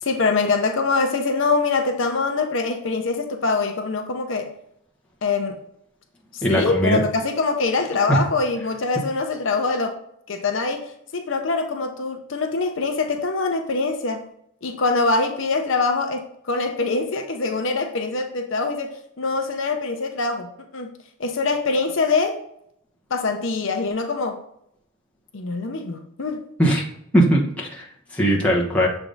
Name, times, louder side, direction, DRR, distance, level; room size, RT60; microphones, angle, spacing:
voice 1, 0.0-4.5 5.2-5.6 6.3-10.0 10.3-10.8 11.1-14.3 14.6-20.9 21.2-22.4 23.1-24.4 25.3-26.5, left 3 dB, 60° left, 4 dB, 0.6 m, -24 dB
voice 2, 6.4-7.0 8.1-8.2 26.6-26.8 27.1-27.8 28.1-28.9, right 1 dB, 5° left, -3 dB, 1.0 m, -19 dB
6.9 x 3.5 x 3.9 m, 0.74 s
head